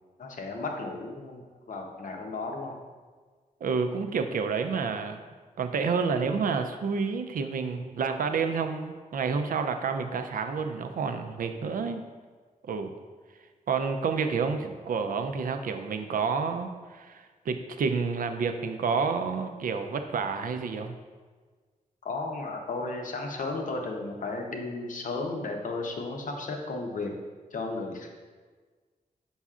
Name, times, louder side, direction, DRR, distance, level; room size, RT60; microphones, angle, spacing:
voice 1, 0.2-2.8 22.0-27.1 27.5-28.1, left 3 dB, 65° left, 1 dB, 0.8 m, -34 dB
voice 2, 3.6-5.2 5.6-12.0 12.7-12.9 13.7-21.0, right 5 dB, 75° right, 7 dB, 0.5 m, -29 dB
7.0 x 5.4 x 2.4 m, 1.5 s
wide cardioid pair, 135°, 14 cm